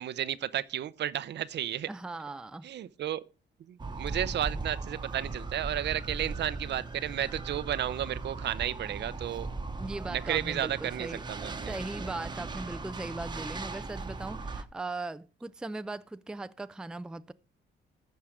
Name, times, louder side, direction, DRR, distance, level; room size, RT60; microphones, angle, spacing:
voice 1, 0.0-1.9 2.6-3.2 3.7-9.5 10.1-11.7, right 11 dB, 60° right, 0.6 m, -33 dB
voice 2, 1.9-2.7 9.8-11.3 11.7-17.3, right 2 dB, 5° right, 0.4 m, -39 dB
sound 1, 3.8-14.6, right 3 dB, 20° right, 1.0 m, -38 dB
14.5 x 5.6 x 4.9 m
cardioid pair, 90°, 20 cm